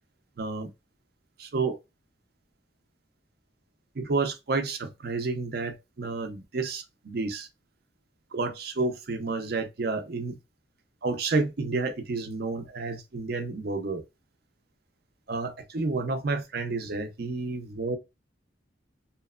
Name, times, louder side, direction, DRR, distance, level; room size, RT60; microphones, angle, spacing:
voice 1, 0.4-0.7 1.4-1.8 4.0-7.5 8.3-10.4 11.0-14.0 15.3-18.0, right 3 dB, 55° right, 0.5 m, -30 dB
2.9 x 2.1 x 2.3 m
head